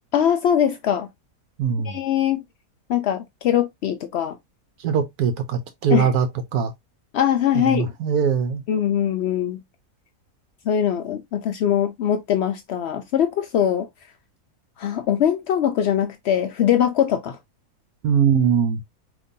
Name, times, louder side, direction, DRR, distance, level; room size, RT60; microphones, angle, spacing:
voice 1, 0.1-1.1 1.8-2.4 2.9-4.4 5.9-6.1 7.1-7.9 8.7-9.6 10.7-13.9 14.8-17.4, left 9 dB, 85° left, 0.5 m, -22 dB
voice 2, 1.6-2.0 4.8-6.3 6.5-6.7 7.7-8.6 18.0-18.8, right 7 dB, 75° right, 1.1 m, -21 dB
5.2 x 2.9 x 2.6 m
omnidirectional pair, 1.7 m